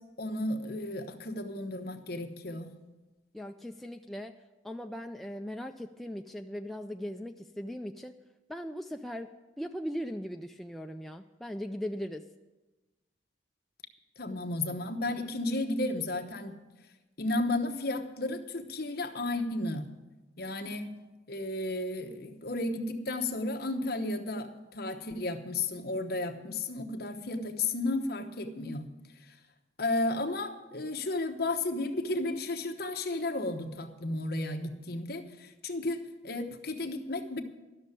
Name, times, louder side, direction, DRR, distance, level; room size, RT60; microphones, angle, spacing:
voice 1, 0.2-2.7 14.2-16.6 17.2-19.9 20.4-20.9 21.3-28.9 29.3-29.4 29.8-37.4, left 2 dB, 50° left, 5 dB, 1.0 m, -33 dB
voice 2, 3.3-4.4 4.6-8.2 8.5-12.3, equal, ahead, 4 dB, 0.3 m, -39 dB
12.5 x 6.6 x 9.6 m, 1.2 s
head